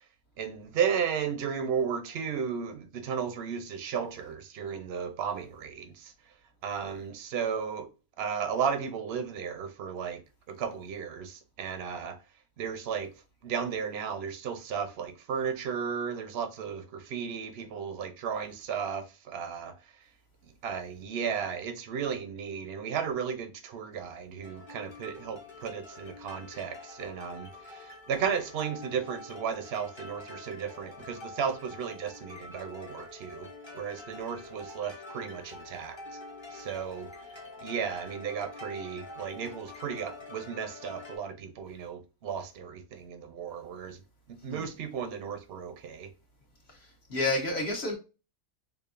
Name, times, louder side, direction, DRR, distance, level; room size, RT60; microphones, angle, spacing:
voice 1, 0.4-6.1 6.6-7.9 8.2-10.2 10.5-12.2 12.6-13.1 13.4-19.7 20.6-33.5 33.7-36.0 36.5-37.1 37.6-44.0 44.3-46.1, right 7 dB, 55° right, 0.8 m, -34 dB
sound 1, 24.4-41.2, left 2 dB, 25° left, 0.8 m, -46 dB
voice 2, 47.1-47.9, left 2 dB, 50° left, 1.1 m, -29 dB
5.1 x 2.4 x 2.5 m
omnidirectional pair, 1.5 m